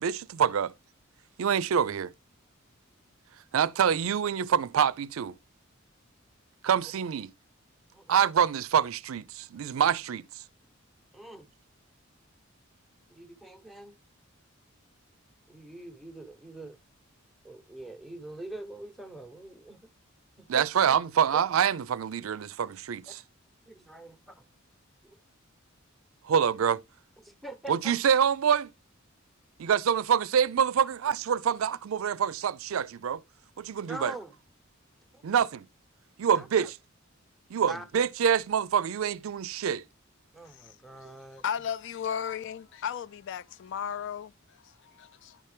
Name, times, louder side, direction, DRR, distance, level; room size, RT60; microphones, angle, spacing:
voice 1, 0.0-0.7 1.4-2.1 3.5-5.4 6.6-7.3 8.1-10.4 20.5-23.1 26.2-26.8 27.7-28.7 29.6-33.2 33.6-34.1 35.2-35.7 36.2-36.7 37.5-39.8, right 8 dB, 80° right, 0.4 m, -26 dB
voice 2, 7.9-8.3 11.1-11.5 13.1-14.0 15.5-16.8 17.4-19.8 20.4-21.0 21.3-21.4 23.1-23.2 23.7-24.4 25.0-25.2 27.2-27.8 33.9-34.3 35.1-35.4 36.3-36.7 37.7-37.9 40.3-41.4, right 2 dB, ahead, 0.9 m, -44 dB
voice 3, 41.4-45.4, left 8 dB, 60° left, 0.4 m, -35 dB
11.0 x 4.4 x 3.2 m
head